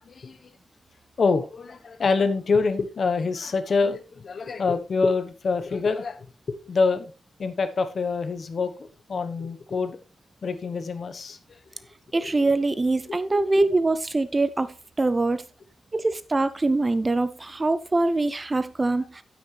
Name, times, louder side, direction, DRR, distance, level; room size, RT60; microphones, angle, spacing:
voice 1, 0.1-0.4 1.2-7.1 7.4-10.0 10.4-11.4 12.2-12.3 13.1-13.2, left 4 dB, 45° left, 1.0 m, -26 dB
voice 2, 12.1-15.4 15.9-19.2, right 2 dB, 20° right, 0.4 m, -24 dB
9.5 x 8.7 x 3.2 m
wide cardioid pair, 155°, 0 cm